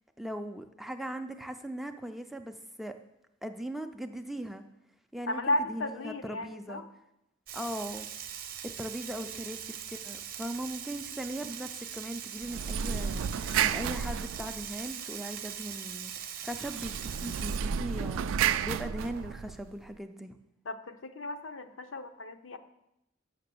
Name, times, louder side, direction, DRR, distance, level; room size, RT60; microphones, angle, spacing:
voice 1, 0.2-2.9 3.4-4.6 5.1-6.8 7.5-8.1 8.6-18.3 18.6-20.4, right 1 dB, ahead, 6 dB, 0.4 m, -39 dB
voice 2, 5.3-6.8 9.1-9.4 20.6-22.6, left 1 dB, 75° left, 8 dB, 0.6 m, -34 dB
Frying (food), 7.5-17.6, right 9 dB, 50° right, 0.7 m, -41 dB
sound 1, 12.4-14.9 16.6-19.7, right 8 dB, 85° right, 0.3 m, -32 dB
6.6 x 6.5 x 6.9 m, 0.85 s
head